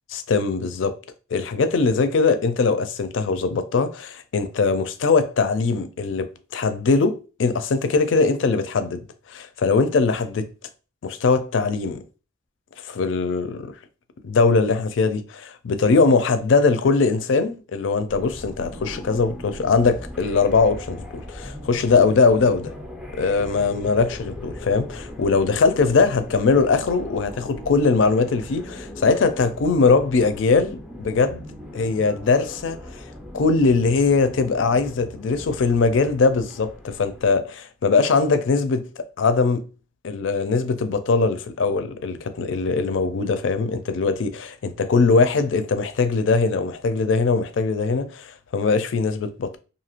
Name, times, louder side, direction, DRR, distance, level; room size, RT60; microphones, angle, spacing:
voice 1, 0.1-1.0 1.3-10.5 11.0-12.0 12.8-13.7 14.2-22.7 23.1-33.0 33.3-38.9 39.2-39.6 40.0-49.6, left 4 dB, 70° left, 0.4 m, -21 dB
sound 1, 18.1-37.3, left 1 dB, ahead, 0.4 m, -39 dB
2.6 x 2.4 x 2.9 m
head